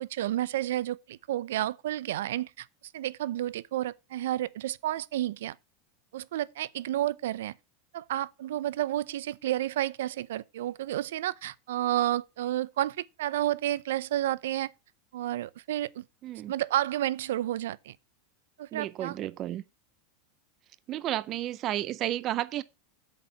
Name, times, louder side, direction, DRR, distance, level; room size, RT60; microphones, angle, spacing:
voice 1, 0.0-2.7 2.9-5.6 6.1-7.5 7.9-14.7 15.1-16.0 16.5-18.0 18.6-19.1, right 13 dB, 80° right, 0.6 m, -31 dB
voice 2, 18.7-19.6 20.9-22.6, right 13 dB, 30° right, 0.4 m, -32 dB
8.5 x 6.7 x 5.7 m
supercardioid pair, 175°, 0 cm